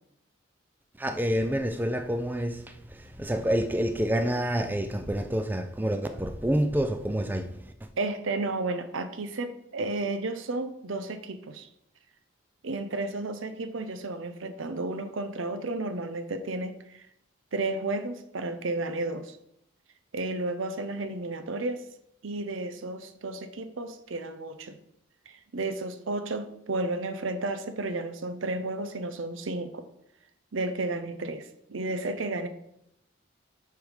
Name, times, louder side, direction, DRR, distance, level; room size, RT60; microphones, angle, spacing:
voice 1, 1.0-7.9, equal, 10° right, 0.4 m, -28 dB
voice 2, 8.0-11.7 12.6-17.0 17.5-19.4 20.1-21.9 22.2-24.8 25.3-29.9 30.5-32.5, right 2 dB, 80° right, 0.7 m, -32 dB
9.2 x 3.5 x 5.0 m
head